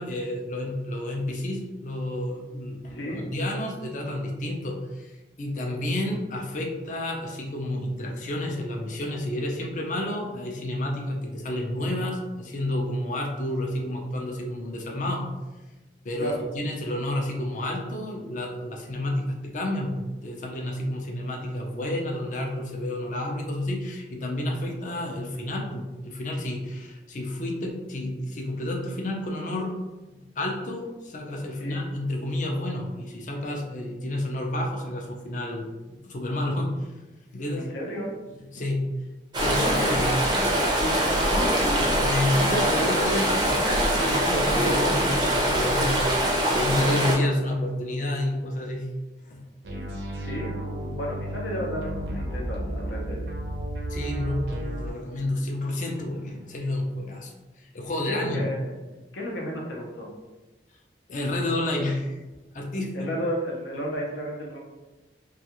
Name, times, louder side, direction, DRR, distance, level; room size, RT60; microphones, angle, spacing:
voice 1, 0.0-15.3 16.0-29.7 30.4-36.9 37.3-37.7 38.5-38.8 39.4-40.1 42.0-48.9 49.3-49.4 53.9-57.3 57.6-58.4 61.1-62.2 62.5-63.1, left 1 dB, 45° left, 0 dB, 0.4 m, -30 dB
voice 2, 2.9-3.3 16.2-16.4 31.6-31.8 37.5-38.1 39.5-40.4 40.8-41.4 49.7-49.8 50.2-53.2 58.1-58.7 59.1-60.1 62.9-64.6, equal, 80° left, -2 dB, 0.7 m, -33 dB
sound 1, 39.3-47.1, equal, 25° right, 0.4 m, -23 dB
sound 2, 49.6-54.9, equal, 75° right, 0.5 m, -32 dB
2.3 x 2.3 x 2.8 m, 1.1 s
head